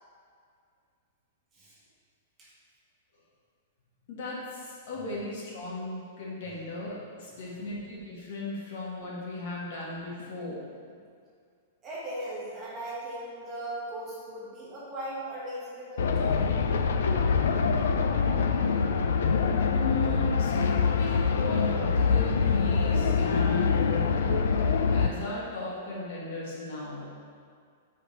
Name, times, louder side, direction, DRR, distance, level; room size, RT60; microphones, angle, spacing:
voice 1, 4.1-10.7 19.7-27.1, left 2 dB, 50° left, -5 dB, 1.4 m, -36 dB
voice 2, 11.8-16.4, right 1 dB, 15° right, -8 dB, 1.3 m, -38 dB
sound 1, 16.0-25.1, left 5 dB, 75° left, 0.4 m, -25 dB
6.5 x 4.9 x 3.1 m, 2.2 s
supercardioid pair, 175°, 0 cm